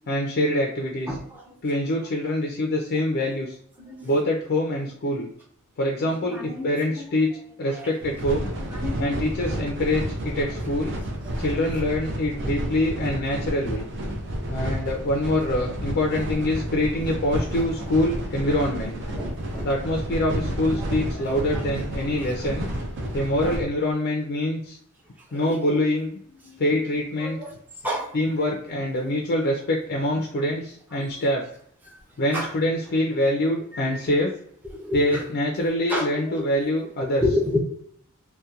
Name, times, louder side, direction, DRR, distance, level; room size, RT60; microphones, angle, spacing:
voice 1, 0.1-1.2 1.6-3.6 4.0-5.3 5.8-7.3 7.6-8.5 9.0-11.0 11.4-13.9 14.5-19.0 19.6-22.7 23.1-24.8 25.3-26.2 26.6-27.4 28.1-31.5 32.2-34.3 34.9-37.2, left 1 dB, 50° left, 0 dB, 0.4 m, -25 dB
voice 2, 1.1-1.4 3.8-4.1 6.3-6.7 6.9-7.0 7.7-7.9 8.7-9.3 11.2-11.4 19.2-19.7 20.8-20.9 22.2-22.3 23.4-23.5 25.3-25.4 26.4-26.6 27.2-27.5 27.8-28.1 32.3-32.5 34.8-35.2 35.9-36.1 36.4-36.5 37.2-37.6, left 1 dB, 10° right, -2 dB, 0.5 m, -29 dB
sound 1, 8.0-23.6, right 1 dB, 60° right, 0.5 m, -31 dB
2.7 x 2.1 x 2.3 m, 0.63 s
head